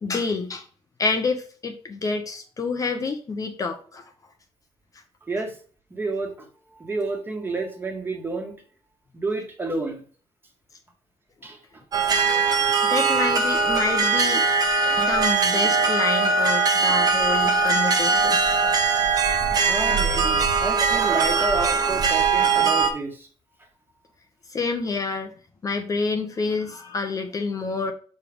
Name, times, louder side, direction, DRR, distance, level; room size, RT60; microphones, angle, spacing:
voice 1, 0.0-0.7 1.0-4.1 12.9-14.5 15.0-18.4 24.5-25.3 25.6-27.9, left 4 dB, 35° left, 5 dB, 0.8 m, -28 dB
voice 2, 5.9-6.3 6.8-8.5 9.1-10.0 11.4-11.6 19.7-23.3, right 3 dB, 20° right, 2 dB, 1.7 m, -29 dB
sound 1, 11.9-22.9, right 4 dB, 40° right, 1.2 m, -21 dB
6.5 x 5.0 x 3.6 m, 0.42 s
cardioid pair, 125°, 10 cm